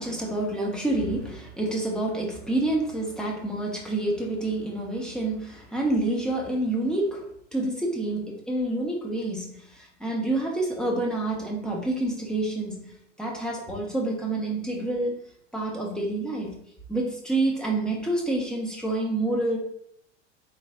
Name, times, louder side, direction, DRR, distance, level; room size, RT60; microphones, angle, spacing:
voice 1, 0.0-15.2 15.5-16.6 16.9-19.6, right 2 dB, ahead, -2 dB, 1.1 m, -28 dB
3.8 x 3.2 x 3.7 m, 0.68 s
hypercardioid pair, 90°, 37 cm